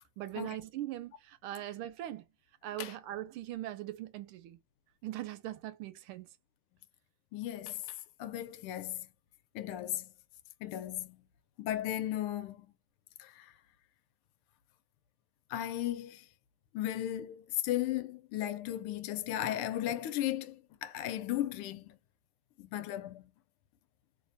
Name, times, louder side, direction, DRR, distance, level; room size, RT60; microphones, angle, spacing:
voice 1, 0.2-2.2 2.6-4.6 5.0-6.3, right 13 dB, 85° right, 1.5 m, -40 dB
voice 2, 7.3-9.1 9.5-10.1 10.6-11.2 11.6-12.7 13.2-13.5 15.5-16.2 16.7-22.0 22.6-23.3, left 13 dB, 90° left, 1.5 m, -36 dB
3.2 x 3.1 x 2.5 m
omnidirectional pair, 2.4 m